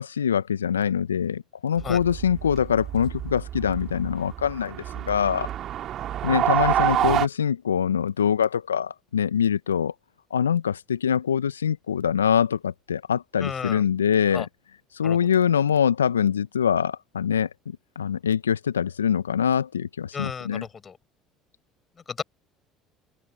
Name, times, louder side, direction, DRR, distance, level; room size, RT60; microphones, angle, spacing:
voice 1, 0.0-4.8 5.1-5.5 6.2-9.9 10.3-14.5 14.9-17.5 18.0-20.6, left 8 dB, 85° left, 1.0 m, -24 dB
sound 1, 1.8-7.3, right 11 dB, 50° right, 2.5 m, -27 dB
voice 2, 13.4-13.8 14.3-14.5 15.0-15.3 20.1-21.0 22.1-22.2, left 6 dB, 35° left, 7.6 m, -33 dB
open air
figure-of-eight pair, 60°, 0 cm